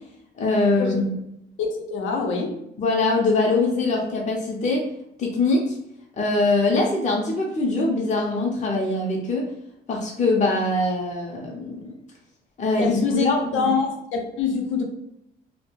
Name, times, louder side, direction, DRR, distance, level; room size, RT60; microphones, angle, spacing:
voice 1, 0.4-1.0 2.8-4.9 5.2-5.8 6.2-9.5 9.9-11.9 12.6-13.7, left 2 dB, 35° left, -2 dB, 0.6 m, -23 dB
voice 2, 1.6-2.6 12.8-14.8, left 4 dB, 80° left, 2 dB, 0.6 m, -25 dB
2.2 x 2.1 x 3.0 m, 0.80 s
cardioid pair, 90°, 20 cm